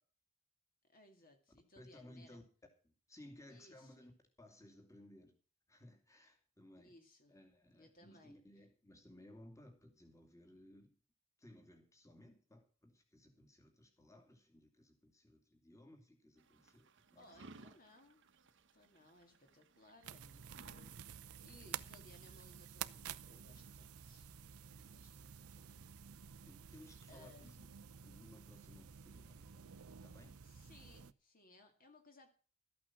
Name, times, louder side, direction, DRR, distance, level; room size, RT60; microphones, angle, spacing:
voice 1, 0.9-2.4 3.5-4.1 6.8-7.4 7.7-8.7 17.2-18.3 18.7-24.4 24.8-25.9 26.2-26.5 27.1-27.6 30.4-32.3, left 2 dB, 40° left, 4 dB, 2.3 m, -64 dB
voice 2, 1.8-2.4 2.8-4.1 4.4-5.4 5.7-6.9 7.3-11.0 11.4-17.3 26.5-27.7 28.0-29.7 30.0-30.4, left 1 dB, 15° left, 4 dB, 2.7 m, -60 dB
sound 1, 16.4-27.5, right 3 dB, 55° right, 1.1 m, -65 dB
sound 2, 20.0-31.1, right 8 dB, 85° right, 0.7 m, -51 dB
13.5 x 8.7 x 6.0 m, 0.38 s
head